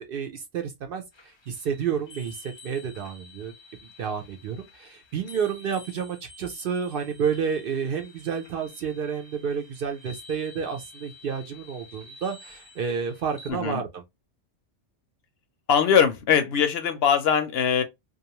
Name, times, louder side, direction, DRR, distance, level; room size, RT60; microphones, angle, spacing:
voice 1, 0.1-1.0 1.5-3.5 4.0-14.0, right 7 dB, 60° right, 0.6 m, -30 dB
sound 1, 1.1-13.5, left 3 dB, 45° left, 0.3 m, -50 dB
voice 2, 13.5-13.8 15.7-17.8, left 7 dB, 65° left, 0.7 m, -21 dB
2.5 x 2.3 x 2.8 m
omnidirectional pair, 1.2 m